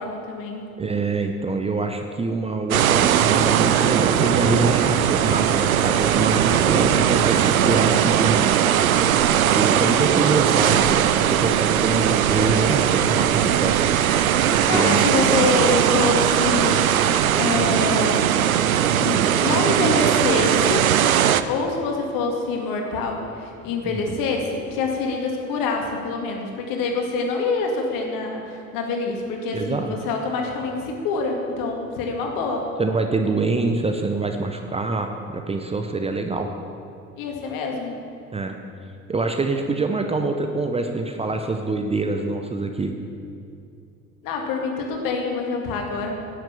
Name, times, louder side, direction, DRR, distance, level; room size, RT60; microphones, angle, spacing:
voice 1, 0.0-0.6 14.4-16.9 17.4-18.3 18.8-20.9 21.5-32.7 37.2-38.0 44.2-46.2, left 4 dB, 50° left, 2 dB, 2.1 m, -26 dB
voice 2, 0.8-8.6 9.4-13.8 14.7-15.0 29.5-30.0 32.8-36.5 38.3-38.5 39.1-43.0, right 3 dB, 15° right, 5 dB, 0.7 m, -25 dB
sound 1, 2.7-21.4, right 10 dB, 80° right, 0.5 m, -19 dB
10.5 x 8.4 x 7.0 m, 2.6 s
figure-of-eight pair, 65°, 41 cm